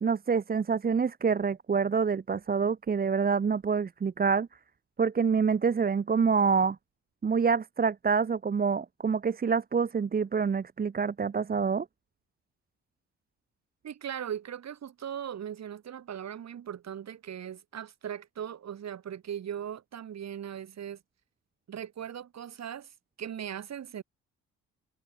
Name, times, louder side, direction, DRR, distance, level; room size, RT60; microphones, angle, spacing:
voice 1, 0.0-4.5 5.0-6.8 7.2-11.8, right 5 dB, 30° right, 1.1 m, -26 dB
voice 2, 13.8-21.0 21.7-24.0, right 9 dB, 60° right, 7.4 m, -39 dB
cardioid pair, 90°, 30 cm